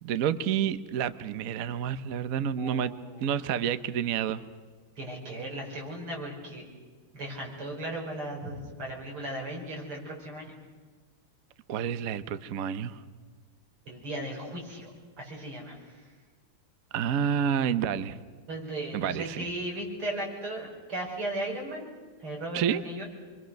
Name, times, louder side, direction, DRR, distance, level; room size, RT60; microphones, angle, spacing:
voice 1, 0.0-2.9 3.2-4.4 11.7-13.0 16.9-18.2 18.9-19.5 22.5-22.8, right 8 dB, 55° right, 13 dB, 1.0 m, -29 dB
voice 2, 2.6-3.0 5.0-6.7 7.1-10.5 13.9-14.9 15.2-16.1 18.5-21.9 22.2-23.1, right 1 dB, 85° right, -1 dB, 6.4 m, -36 dB
27.0 x 23.5 x 6.5 m, 1.4 s
omnidirectional pair, 2.3 m